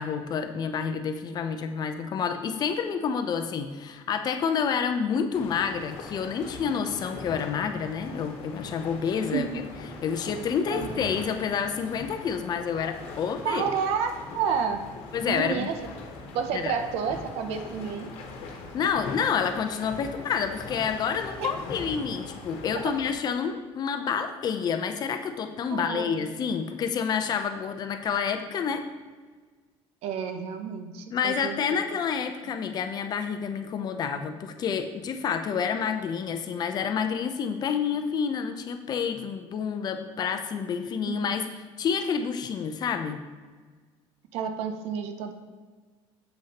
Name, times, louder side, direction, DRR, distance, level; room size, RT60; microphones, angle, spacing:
voice 1, 0.0-9.5 10.0-13.6 15.1-15.7 16.5-16.8 18.7-28.8 31.1-41.5 41.8-43.2, left 6 dB, 40° left, 7 dB, 0.5 m, -29 dB
sound 1, 5.3-23.1, left 3 dB, 70° left, 1.2 m, -41 dB
voice 2, 9.3-9.6 10.7-11.0 13.4-14.9 15.3-15.8 16.3-18.1 21.4-21.5 22.8-22.9 25.7-26.3 30.0-31.6 31.9-32.0 41.0-41.3 44.3-45.3, right 7 dB, 70° right, 7 dB, 0.7 m, -30 dB
7.1 x 6.2 x 2.9 m, 1.4 s
cardioid pair, 130°, 11 cm